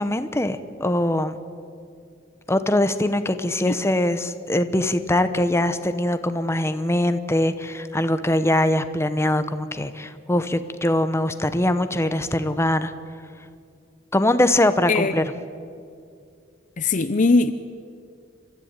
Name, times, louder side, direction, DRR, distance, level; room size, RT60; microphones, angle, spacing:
voice 1, 0.0-1.4 2.5-12.9 14.1-15.2, left 1 dB, 15° left, 10 dB, 1.0 m, -22 dB
voice 2, 14.9-15.3 16.8-17.5, left 3 dB, 40° left, 11 dB, 0.7 m, -20 dB
30.0 x 13.5 x 9.0 m, 2.4 s
head